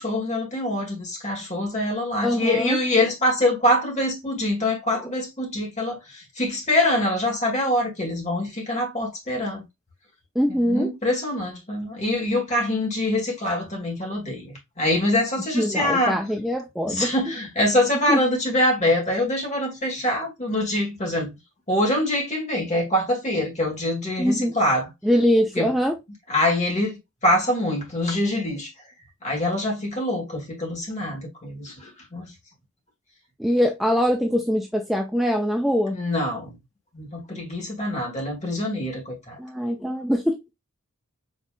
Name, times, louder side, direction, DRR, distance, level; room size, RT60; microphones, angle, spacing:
voice 1, 0.0-9.6 10.5-16.2 16.9-21.3 21.7-24.9 25.5-25.7 26.3-27.0 27.2-28.7 29.2-32.3 35.9-36.5 36.9-39.3, left 1 dB, 30° left, 1.8 m, -24 dB
voice 2, 2.2-2.8 10.4-10.9 15.5-17.1 18.1-18.2 24.2-24.5 25.0-26.0 33.4-36.0 39.4-40.5, equal, ahead, 0.4 m, -23 dB
5.3 x 3.1 x 2.5 m
head